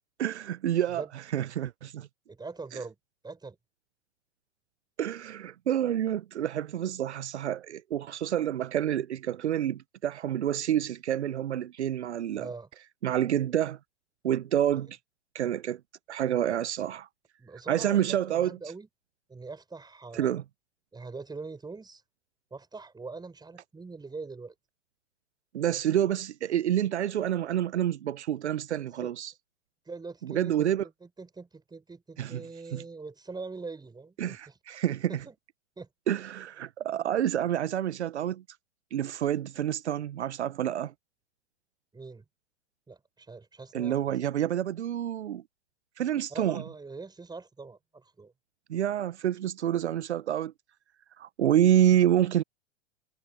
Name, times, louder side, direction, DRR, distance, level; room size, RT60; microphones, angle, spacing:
voice 1, 0.2-1.0 1.3-2.1 5.0-12.5 13.0-13.8 14.2-15.0 15.3-15.8 16.1-17.1 17.7-18.6 20.1-20.4 25.5-29.3 30.2-30.8 32.2-32.4 32.7-32.8 34.2-35.2 36.1-38.4 38.9-40.9 43.7-45.4 46.0-46.6 48.7-50.5 51.2-52.4, right 11 dB, 80° right, 0.8 m, -28 dB
voice 2, 2.3-3.0 3.2-3.6 12.4-12.7 14.7-14.8 17.4-18.9 19.3-20.4 20.9-22.0 22.5-24.5 28.8-29.1 29.9-34.6 35.1-35.3 35.8-35.9 41.9-42.2 42.9-44.1 46.3-48.3, right 4 dB, 10° right, 5.8 m, -42 dB
hypercardioid pair, 95°, 33 cm